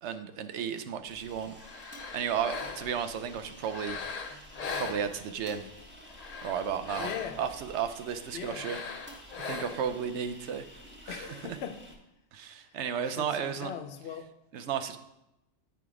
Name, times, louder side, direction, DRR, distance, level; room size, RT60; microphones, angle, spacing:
voice 1, 0.0-1.5 2.1-4.0 4.2-4.4 4.7-5.6 6.4-7.1 7.4-8.8 9.4-10.7 11.1-11.3 12.3-13.7 14.5-15.0, right 7 dB, 75° right, 10 dB, 0.9 m, -33 dB
sound 1, 1.0-12.0, equal, 10° right, 1.0 m, -51 dB
sound 2, 1.6-3.1 3.6-5.5 6.0-7.5 8.4-10.0, left 5 dB, 50° left, 0.5 m, -40 dB
voice 2, 7.0-7.4 8.3-8.7 11.1-11.8 13.0-14.2, left 8 dB, 65° left, 8 dB, 0.9 m, -39 dB
9.0 x 3.6 x 4.7 m, 0.88 s
omnidirectional pair, 1.2 m